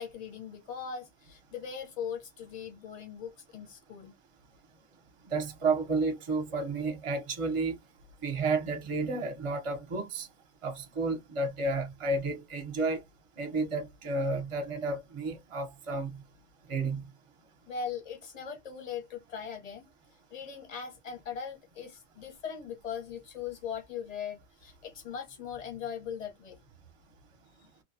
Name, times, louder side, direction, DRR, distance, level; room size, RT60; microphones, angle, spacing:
voice 1, 0.0-4.1 17.7-19.9 20.3-26.6, left 7 dB, 35° left, 0.8 m, -40 dB
voice 2, 5.3-7.8 8.2-10.3 10.6-13.0 13.4-16.2 16.7-17.0, right 3 dB, 30° right, 0.6 m, -31 dB
2.8 x 2.2 x 2.6 m
omnidirectional pair, 1.5 m